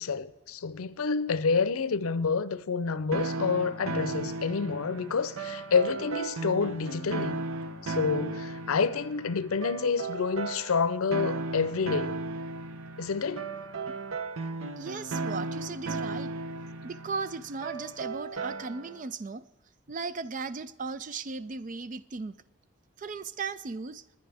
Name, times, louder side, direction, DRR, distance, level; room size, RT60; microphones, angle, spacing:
voice 1, 0.0-7.4 7.8-12.2 13.0-13.5, left 5 dB, 85° left, 0.6 m, -28 dB
sound 1, 3.1-19.0, right 3 dB, 75° right, 0.8 m, -36 dB
voice 2, 14.8-16.3 16.8-19.4 19.9-22.4 23.0-24.0, right 4 dB, 35° right, 0.4 m, -36 dB
21.0 x 9.8 x 3.5 m
head